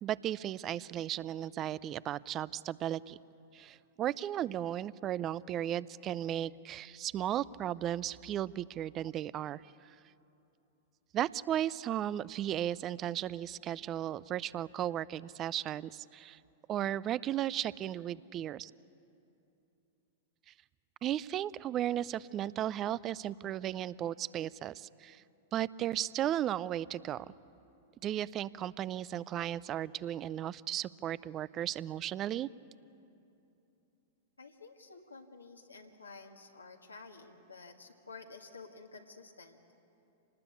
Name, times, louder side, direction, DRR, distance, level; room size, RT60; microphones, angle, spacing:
voice 1, 0.0-3.2 3.5-10.0 11.1-16.4 16.7-18.7 21.0-25.2 25.5-27.3 28.0-32.5, right 11 dB, 30° right, 20 dB, 0.5 m, -35 dB
voice 2, 34.4-39.6, left 4 dB, 90° left, 2 dB, 1.7 m, -51 dB
26.5 x 19.5 x 8.4 m, 2.8 s
figure-of-eight pair, 100°, 0 cm